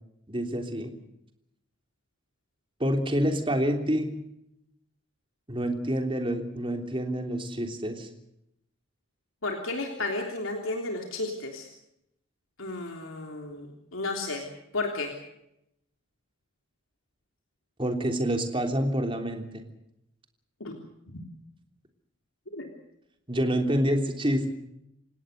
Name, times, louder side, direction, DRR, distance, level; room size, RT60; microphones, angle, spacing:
voice 1, 0.3-0.9 2.8-4.1 5.5-8.1 17.8-19.6 23.3-24.5, equal, 25° right, 4 dB, 3.3 m, -27 dB
voice 2, 9.4-11.7 12.6-14.5 14.7-15.1 20.6-20.8 22.5-22.7, left 2 dB, 90° left, 2 dB, 3.4 m, -33 dB
29.0 x 17.5 x 6.7 m, 0.81 s
head